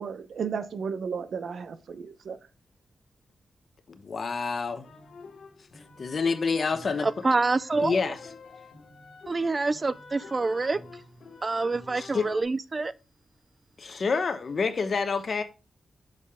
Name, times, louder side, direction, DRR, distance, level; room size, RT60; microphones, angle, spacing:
voice 1, 0.0-2.4, right 6 dB, 65° right, 0.7 m, -34 dB
voice 2, 3.9-4.9 6.0-7.1 7.8-8.2 12.0-12.2 13.8-15.4, left 5 dB, 45° left, 0.9 m, -28 dB
sound 1, 4.8-12.4, left 3 dB, 65° left, 2.0 m, -48 dB
voice 3, 7.0-8.0 9.3-11.0 11.4-12.9, right 3 dB, 25° right, 0.4 m, -27 dB
7.3 x 6.6 x 3.5 m
wide cardioid pair, 165°, 0 cm